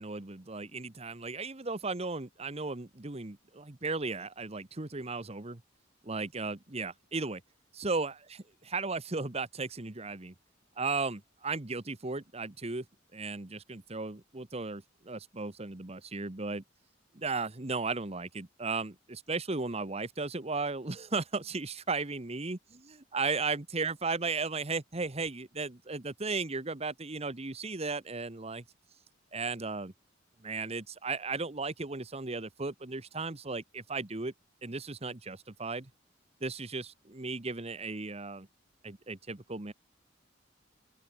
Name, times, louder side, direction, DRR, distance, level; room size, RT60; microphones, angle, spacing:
voice 1, 0.0-5.6 6.0-7.4 7.7-8.1 8.6-10.3 10.8-12.8 13.1-16.6 17.1-22.6 23.1-28.6 29.3-29.9 30.4-34.3 34.6-35.9 36.4-38.5 38.8-39.7, right 3 dB, 30° right, 1.2 m, -35 dB
open air
head